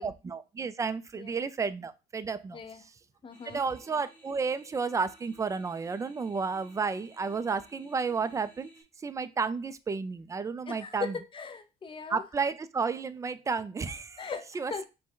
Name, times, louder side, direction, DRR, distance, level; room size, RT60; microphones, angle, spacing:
voice 1, 0.0-2.6 3.5-8.7 9.0-11.2 12.1-14.3 14.5-14.8, right 5 dB, 20° right, 0.3 m, -32 dB
voice 2, 3.2-3.6 10.7-12.2 14.2-14.9, left 5 dB, 30° left, 0.6 m, -39 dB
sound 1, 3.3-8.8, right 1 dB, 10° left, 1.4 m, -58 dB
5.0 x 2.1 x 3.8 m
cardioid pair, 110°, 17 cm